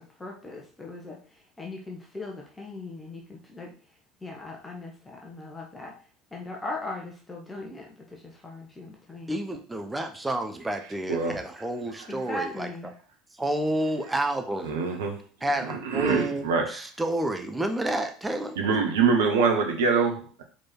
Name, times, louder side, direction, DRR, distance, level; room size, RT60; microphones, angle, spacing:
voice 1, 0.0-3.7 4.2-5.9 6.3-9.3 12.1-12.9, left 2 dB, 15° left, -1 dB, 1.5 m, -39 dB
voice 2, 9.3-12.7 13.4-14.8 15.4-18.6, right 1 dB, 10° right, 6 dB, 1.0 m, -30 dB
voice 3, 11.1-11.7 12.0-12.1 14.6-15.2 15.6-16.8 18.5-20.4, right 5 dB, 70° right, 3 dB, 1.3 m, -25 dB
4.8 x 4.6 x 4.5 m, 0.41 s
figure-of-eight pair, 65°, 0 cm